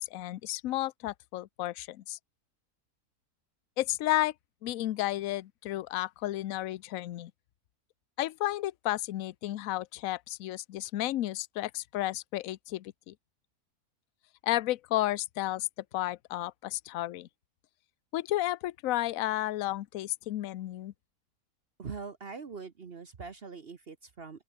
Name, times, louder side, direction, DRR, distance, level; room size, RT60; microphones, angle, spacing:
voice 1, 0.0-2.2 3.8-4.3 4.6-7.3 8.2-13.1 14.4-15.7 15.9-17.3 18.1-20.9, left 15 dB, 65° left, 1.0 m, -32 dB
voice 2, 21.8-24.4, right 5 dB, 40° right, 1.2 m, -42 dB
open air
omnidirectional pair, 1.6 m